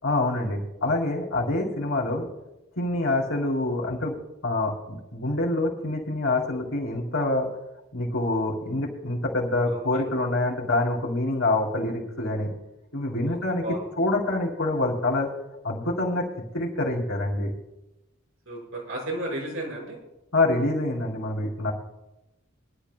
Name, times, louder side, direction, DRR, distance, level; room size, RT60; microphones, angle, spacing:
voice 1, 0.0-2.3 2.8-4.2 4.4-7.5 7.9-12.5 12.9-13.6 14.0-15.3 15.6-16.2 16.5-17.5 20.3-21.7, left 2 dB, 80° left, -2 dB, 3.6 m, -26 dB
voice 2, 9.7-10.1 13.2-13.9 18.5-20.0, right 1 dB, 75° right, -2 dB, 5.4 m, -34 dB
24.0 x 12.0 x 2.3 m, 0.95 s
head